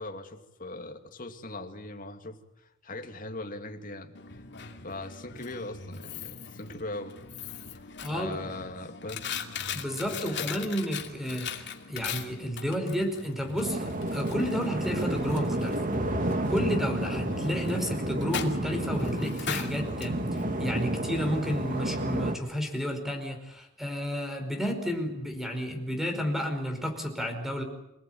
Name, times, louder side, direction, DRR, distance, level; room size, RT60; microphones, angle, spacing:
voice 1, 0.0-2.4 2.8-4.1 4.8-7.2 7.7-7.8 8.1-9.2 10.0-10.5, left 2 dB, 45° left, 4 dB, 2.6 m, -40 dB
Coin (dropping), 4.1-21.9, left 6 dB, 60° left, 2.7 m, -41 dB
voice 2, 8.0-8.4 9.7-15.8 16.5-27.6, equal, ahead, 5 dB, 5.0 m, -32 dB
sound 1, 13.6-22.4, right 1 dB, 45° right, 2.2 m, -30 dB
27.0 x 18.5 x 9.3 m, 0.87 s
head